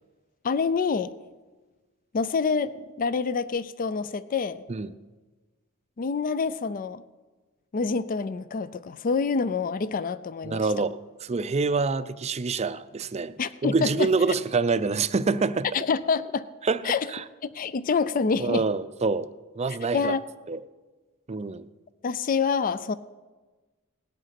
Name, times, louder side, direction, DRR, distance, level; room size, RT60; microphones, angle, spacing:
voice 1, 0.4-1.1 2.1-2.7 3.0-4.6 6.0-7.0 7.7-10.7 13.4-14.1 15.7-16.5 16.8-17.1 17.4-18.6 19.9-20.2 22.0-22.9, left 5 dB, 40° left, 0.4 m, -26 dB
voice 2, 10.4-13.3 13.6-15.7 16.6-17.2 18.4-19.3 19.6-20.1 20.5-20.6 21.3-21.7, right 4 dB, 30° right, 0.5 m, -26 dB
18.5 x 8.1 x 5.8 m
head